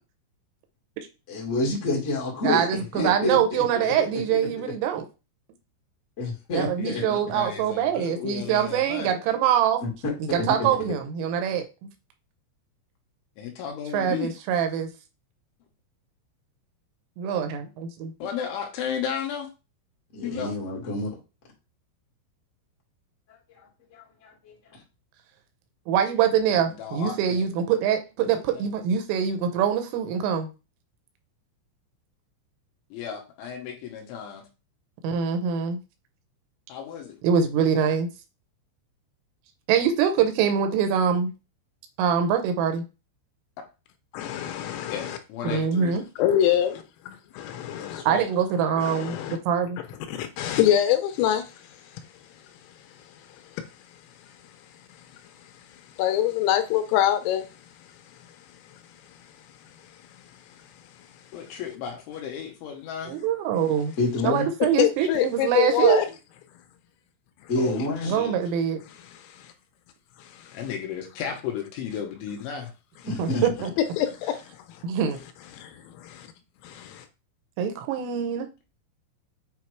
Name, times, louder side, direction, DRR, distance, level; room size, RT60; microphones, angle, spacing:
voice 1, 1.3-2.6 2.9-3.6 6.2-7.0 9.8-10.7 20.1-21.1 23.5-23.6 23.9-24.5 64.0-64.5 67.5-68.2 73.0-73.4, left 2 dB, 45° left, 0.9 m, -28 dB
voice 2, 2.4-5.0 6.5-9.8 10.3-11.7 13.9-14.9 17.2-18.1 25.9-30.5 35.0-35.8 37.2-38.1 39.7-41.3 42.0-42.8 45.4-46.0 48.1-49.2 49.5-49.8 63.1-63.9 64.2-66.0 68.1-68.8 73.1-73.7 74.8-75.2 77.6-78.5, right 8 dB, 85° right, 3.4 m, -24 dB
voice 3, 3.7-4.1 6.8-9.2 13.4-14.3 18.2-19.5 20.2-20.5 26.5-27.5 28.5-28.7 32.9-34.4 36.7-37.2 44.9-45.9 47.7-48.3 61.3-63.2 67.6-68.4 70.5-72.7, left 8 dB, 75° left, 3.3 m, -34 dB
voice 4, 44.1-45.2 45.4-45.6 46.2-48.1 48.7-49.4 50.1-51.5 56.0-57.5 64.2-64.4 64.8-66.1 69.0-69.5 70.2-70.6 74.0-74.5 75.5-76.3 76.6-77.0, left 11 dB, 90° left, 3.4 m, -25 dB
8.3 x 2.8 x 4.6 m
omnidirectional pair, 6.0 m